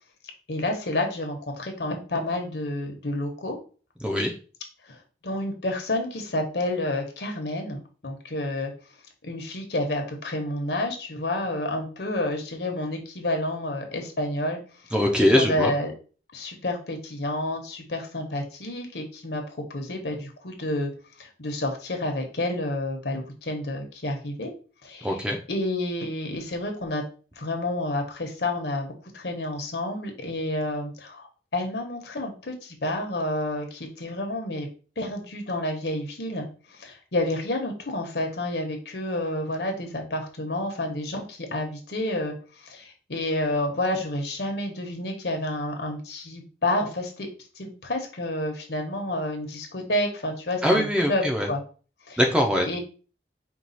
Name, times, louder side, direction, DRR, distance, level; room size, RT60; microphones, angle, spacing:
voice 1, 0.5-3.6 4.9-5.0 5.2-8.7 9.2-14.6 15.3-15.9 16.3-20.9 21.2-24.5 24.8-25.2 25.5-27.0 27.4-34.7 35.0-42.3 42.6-47.3 47.6-51.6 52.1-52.2 52.7-52.8, left 1 dB, 70° left, 4 dB, 1.0 m, -29 dB
voice 2, 4.0-4.3 14.9-15.7 25.0-25.4 50.6-51.5 52.2-52.7, equal, 5° right, 2 dB, 0.5 m, -22 dB
4.6 x 2.3 x 4.0 m, 0.38 s
head